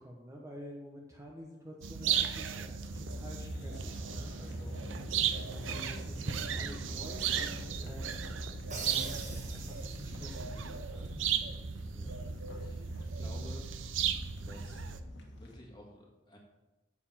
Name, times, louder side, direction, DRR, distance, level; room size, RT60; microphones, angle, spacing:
voice 1, 0.0-5.3 5.6-8.3 8.8-11.1, equal, 15° right, -1 dB, 1.0 m, -49 dB
sound 1, 1.8-15.0, right 8 dB, 80° right, 0.6 m, -36 dB
sound 2, 2.8-15.6, equal, 65° left, 1.5 m, -45 dB
Crash cymbal, 8.7-10.4, right 3 dB, 40° right, 1.5 m, -45 dB
voice 2, 12.5-13.6 14.0-14.1 14.4-14.8 15.4-16.4, left 1 dB, 20° left, 0 dB, 1.8 m, -52 dB
8.2 x 6.9 x 5.6 m, 1.0 s
head